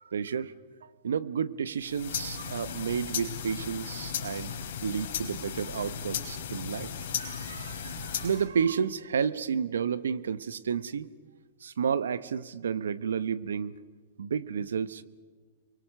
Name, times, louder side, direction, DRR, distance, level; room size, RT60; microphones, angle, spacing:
voice 1, 0.1-0.5 0.8-6.9 7.2-11.1 11.6-13.7 14.2-15.0, right 7 dB, 80° right, 16 dB, 0.9 m, -31 dB
sound 1, 1.8-8.5, left 7 dB, 65° left, 3.9 m, -36 dB
29.5 x 24.0 x 6.6 m, 1.4 s
hypercardioid pair, 110°, 0 cm